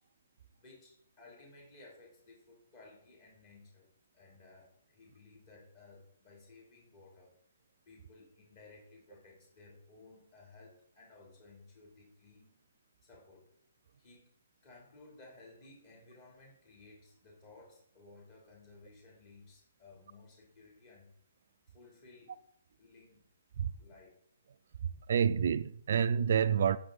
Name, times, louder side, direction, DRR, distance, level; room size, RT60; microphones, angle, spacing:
voice 1, 0.6-3.9 4.1-7.3 7.9-12.6 13.0-13.5 14.0-14.3 14.6-21.1 21.7-22.4 22.8-23.2 23.8-24.1, left 3 dB, 40° left, 2.9 m, -57 dB
voice 2, 25.1-26.8, right 7 dB, 55° right, 0.3 m, -28 dB
9.2 x 5.8 x 3.9 m
figure-of-eight pair, 130°, 0 cm